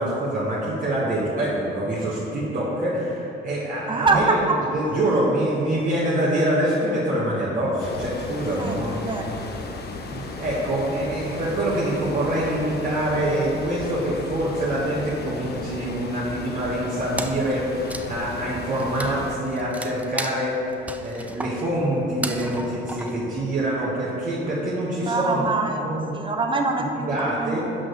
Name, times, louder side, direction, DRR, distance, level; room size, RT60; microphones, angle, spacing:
voice 1, 0.0-4.4 4.7-9.3 9.9-25.5 25.8-26.1 26.8-27.6, right 1 dB, 45° right, -7 dB, 1.4 m, -25 dB
voice 2, 3.9-4.4 8.6-9.7 25.0-25.8 26.1-27.6, right 3 dB, 25° right, 3 dB, 0.8 m, -25 dB
sound 1, 7.8-19.4, left 3 dB, 55° left, 0.8 m, -35 dB
Wood, 17.2-23.9, right 1 dB, 5° right, 0.4 m, -35 dB
6.0 x 4.7 x 6.4 m, 2.9 s
cardioid pair, 90°, 20 cm